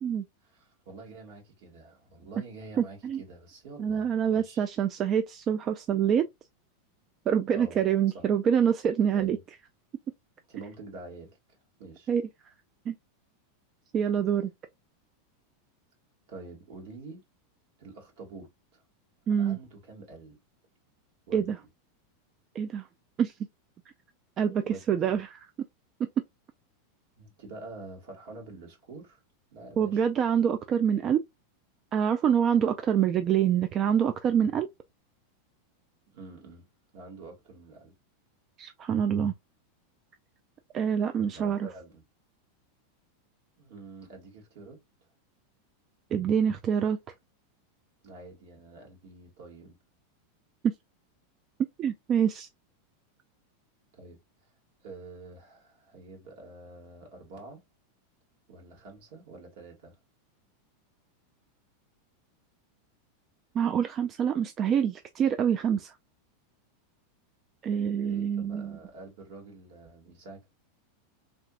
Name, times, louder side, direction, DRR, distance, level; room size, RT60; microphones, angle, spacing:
voice 1, 0.4-4.7 7.4-8.3 9.1-9.4 10.5-12.1 16.3-17.2 17.8-18.8 19.3-20.4 21.3-21.7 24.6-25.2 27.2-29.2 29.5-30.0 32.8-32.9 36.1-36.7 36.9-38.0 41.2-42.0 43.6-44.8 48.0-49.8 53.9-54.2 54.8-57.6 58.5-60.0 68.0-70.5, right 3 dB, 65° right, 1.9 m, -47 dB
voice 2, 2.8-3.2 3.8-6.3 7.3-9.4 12.1-12.2 12.9-13.0 13.9-14.5 19.3-19.6 21.3-21.6 22.6-22.8 23.2-23.3 24.4-25.3 29.8-31.2 31.9-34.7 38.6-39.3 40.7-41.7 46.1-47.0 50.6-50.7 51.8-52.5 63.6-65.9 67.6-68.8, right 8 dB, 35° right, 0.3 m, -26 dB
3.4 x 2.8 x 2.4 m
hypercardioid pair, 105°, 0 cm